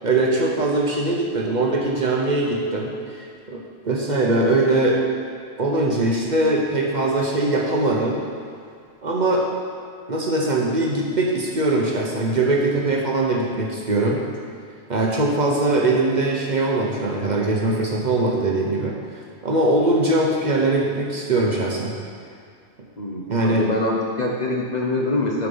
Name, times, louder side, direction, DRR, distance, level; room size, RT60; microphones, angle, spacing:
voice 1, 0.0-5.0 5.6-8.2 9.0-9.5 10.1-14.2 14.9-18.9 19.4-21.9 23.3-23.7, right 2 dB, 45° right, -2 dB, 0.9 m, -21 dB
voice 2, 23.0-25.5, left 2 dB, 40° left, -2 dB, 0.8 m, -24 dB
6.6 x 6.0 x 5.4 m, 2.2 s
omnidirectional pair, 1.2 m